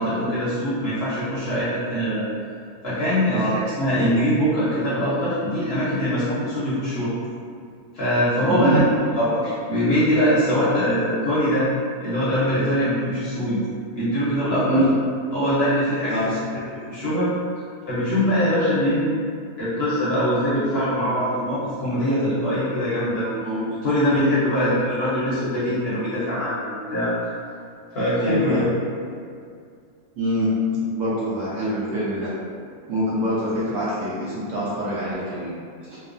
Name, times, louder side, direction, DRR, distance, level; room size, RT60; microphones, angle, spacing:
voice 1, 0.0-2.3 2.8-7.1 7.9-8.8 9.1-11.7 12.0-13.6 13.9-14.8 15.3-16.2 16.9-17.3 17.9-19.0 19.6-27.1 27.9-28.7, equal, 55° left, -11 dB, 0.7 m, -22 dB
voice 2, 3.3-3.6 8.4-8.8 10.6-10.7 14.6-15.0 16.1-16.3 28.2-28.7 30.2-32.4 32.9-35.5 35.9-36.0, equal, 65° right, -8 dB, 0.8 m, -24 dB
3.0 x 2.0 x 2.4 m, 2.3 s
omnidirectional pair, 1.6 m